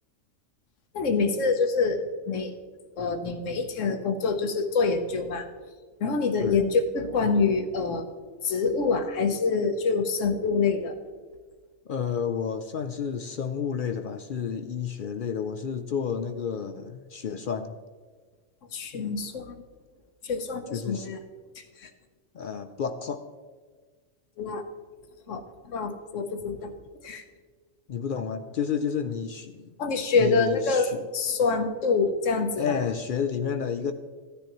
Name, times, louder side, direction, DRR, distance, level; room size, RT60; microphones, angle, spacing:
voice 1, 0.9-2.6 3.0-5.5 6.0-8.0 8.4-11.0 18.7-19.5 20.2-21.2 21.8-21.9 24.4-24.6 25.3-26.7 27.0-27.2 29.8-32.8, left 4 dB, 75° left, 6 dB, 1.3 m, -26 dB
voice 2, 11.9-17.7 18.9-19.1 20.7-21.1 22.3-23.2 27.9-29.7 30.2-31.1 32.6-33.9, left 7 dB, 60° left, 8 dB, 0.5 m, -31 dB
15.5 x 10.0 x 3.0 m, 1.5 s
omnidirectional pair, 1.3 m